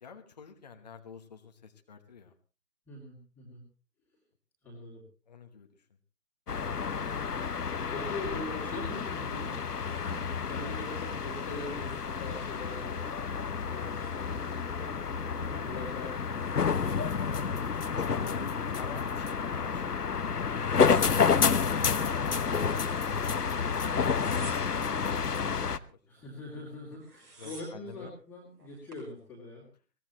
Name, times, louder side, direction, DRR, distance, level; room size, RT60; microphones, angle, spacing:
voice 1, 0.0-2.3 5.3-5.7 18.0-24.4 24.6-24.8 25.6-26.0 27.4-28.1, left 5 dB, 25° left, 5 dB, 1.3 m, -49 dB
voice 2, 2.9-3.6 4.6-5.0 7.7-13.0 13.7-17.8 26.1-29.6, left 2 dB, 5° left, -5 dB, 2.6 m, -43 dB
sound 1, 6.5-25.8, left 6 dB, 65° left, 1.1 m, -30 dB
sound 2, 20.6-22.0 22.4-23.2 23.9-25.0 26.6-26.7 26.9-27.9 28.6-29.1, right 2 dB, 70° right, 7.4 m, -51 dB
22.0 x 18.5 x 3.0 m, 0.35 s
figure-of-eight pair, 155°, 49 cm